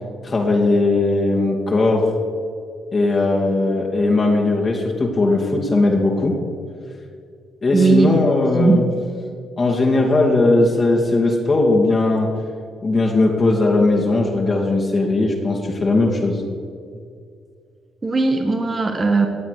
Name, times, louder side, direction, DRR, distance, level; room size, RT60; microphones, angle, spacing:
voice 1, 0.2-2.1 2.9-6.4 7.6-8.8 9.6-12.3 12.8-16.4, left 2 dB, 40° left, -1 dB, 2.5 m, -18 dB
voice 2, 7.7-8.1 8.5-8.9 18.0-19.3, right 3 dB, 30° right, 4 dB, 1.6 m, -17 dB
19.0 x 7.1 x 6.8 m, 2.3 s
supercardioid pair, 70°, 0 cm